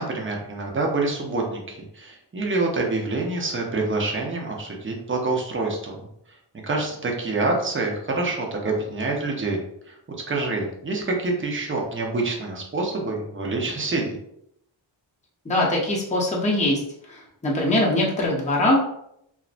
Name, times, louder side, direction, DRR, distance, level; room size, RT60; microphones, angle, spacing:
voice 1, 0.0-6.0 6.5-9.6 9.9-10.0 10.3-14.2, right 3 dB, 25° right, 0 dB, 0.6 m, -26 dB
voice 2, 15.4-16.8 17.1-18.8, left 1 dB, 15° left, -3 dB, 0.6 m, -22 dB
2.5 x 2.1 x 2.4 m, 0.74 s
wide cardioid pair, 60°, 47 cm